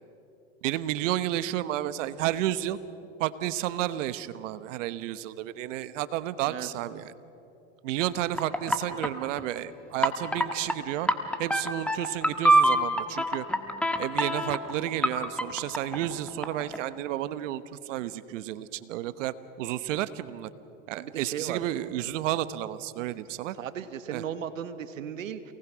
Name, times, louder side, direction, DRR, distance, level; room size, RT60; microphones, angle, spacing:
voice 1, 0.6-2.8 3.2-7.1 7.8-11.1 11.4-13.4 14.0-20.5 20.9-23.6 24.1-24.2, right 13 dB, 70° right, 14 dB, 1.1 m, -31 dB
sound 1, 8.0-9.4 10.0-10.7 11.0-16.8, right 1 dB, 5° left, 1.6 m, -25 dB
voice 2, 20.9-21.6 23.5-25.5, right 9 dB, 90° right, 11 dB, 1.4 m, -36 dB
28.5 x 19.0 x 6.2 m, 2.9 s
hypercardioid pair, 100°, 38 cm